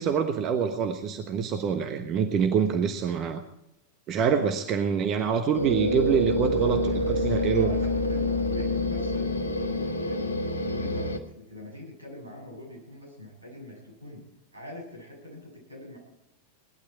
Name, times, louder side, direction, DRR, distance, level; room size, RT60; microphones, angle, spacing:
voice 1, 0.0-3.4 4.1-6.8 7.2-7.7, right 7 dB, 35° right, 7 dB, 1.3 m, -25 dB
sound 1, 5.5-11.2, left 1 dB, 75° left, 1.5 m, -27 dB
voice 2, 6.5-8.2 8.5-9.3 9.8-10.2 10.7-14.2 14.5-16.0, left 1 dB, 80° right, -1 dB, 7.8 m, -43 dB
18.5 x 12.0 x 4.7 m, 0.83 s
figure-of-eight pair, 90°, 0 cm